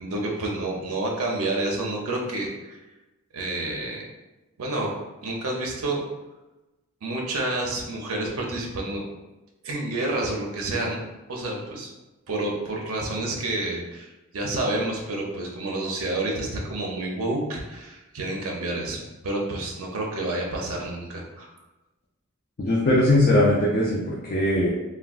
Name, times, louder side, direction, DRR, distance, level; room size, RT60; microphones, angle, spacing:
voice 1, 0.0-2.8 3.3-4.0 4.6-6.0 7.0-9.0 9.6-11.0 11.3-11.9 12.3-21.5, right 2 dB, 80° right, -1 dB, 0.6 m, -29 dB
voice 2, 22.6-24.7, left 1 dB, 40° left, -4 dB, 0.4 m, -20 dB
3.4 x 2.2 x 2.4 m, 1.1 s
head